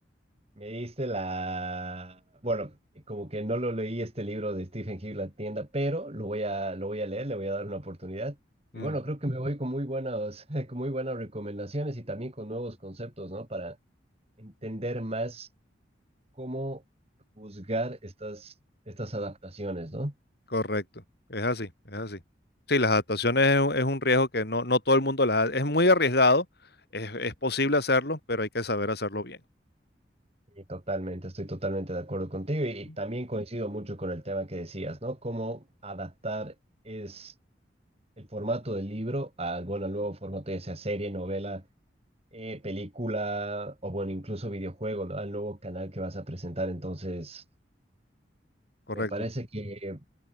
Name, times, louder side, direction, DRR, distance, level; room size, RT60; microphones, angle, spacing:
voice 1, 0.6-2.8 3.1-8.4 8.7-13.8 14.4-15.5 16.4-16.8 17.4-18.5 18.9-20.1 30.6-36.5 36.8-37.3 38.2-41.6 42.3-47.4 48.9-50.0, right 1 dB, 35° right, 3.1 m, -33 dB
voice 2, 20.5-20.8 21.3-22.2 22.7-26.5 26.9-29.4 48.9-49.1, left 2 dB, 60° left, 5.6 m, -25 dB
head